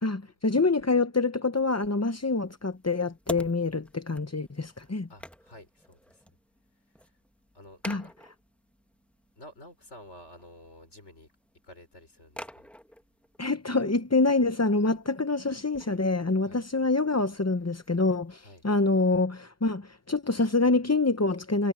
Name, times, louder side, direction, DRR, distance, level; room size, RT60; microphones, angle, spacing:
voice 1, 0.0-5.1 7.8-8.0 13.4-21.7, left 3 dB, 20° left, 0.4 m, -26 dB
sound 1, 1.6-19.2, equal, ahead, 1.0 m, -49 dB
voice 2, 4.8-6.2 7.0-7.1 7.5-8.1 9.4-11.3 11.6-12.5 16.4-16.6 18.4-18.6, left 1 dB, 70° left, 6.1 m, -51 dB
omnidirectional pair, 1.2 m